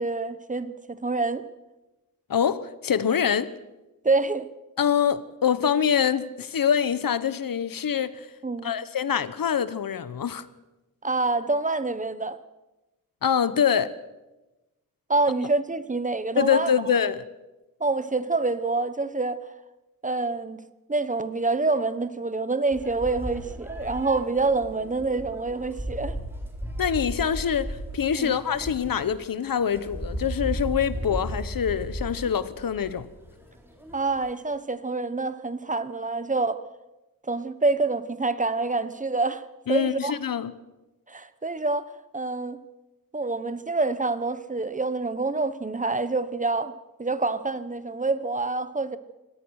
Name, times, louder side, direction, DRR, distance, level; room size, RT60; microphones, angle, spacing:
voice 1, 0.0-1.4 4.0-4.5 8.4-8.7 11.0-12.4 15.1-16.7 17.8-19.4 20.0-20.6 20.9-26.2 28.2-28.4 33.9-36.6 37.2-39.4 39.7-40.1 41.1-42.6 43.1-46.7 47.0-49.0, right 3 dB, 20° right, 1.0 m, -26 dB
voice 2, 2.3-3.5 4.8-8.3 8.6-10.5 13.2-13.9 16.4-17.2 26.8-33.1 39.7-40.5, left 8 dB, 70° left, 1.0 m, -25 dB
sound 1, 22.7-34.3, right 1 dB, 5° right, 3.9 m, -35 dB
24.5 x 18.0 x 6.4 m
wide cardioid pair, 135°, 35 cm